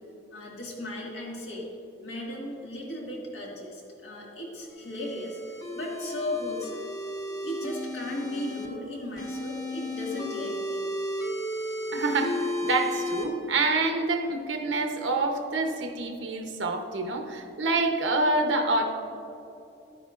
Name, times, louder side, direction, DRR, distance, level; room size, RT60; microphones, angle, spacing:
voice 1, 0.3-1.7 2.0-6.9 7.4-10.9, left 1 dB, 65° left, -3 dB, 2.0 m, -36 dB
sound 1, 4.7-8.7 9.2-13.2, left 1 dB, 20° left, 0.9 m, -34 dB
voice 2, 11.9-18.9, right 2 dB, 80° right, 4 dB, 0.9 m, -27 dB
11.5 x 9.5 x 2.5 m, 2.8 s
head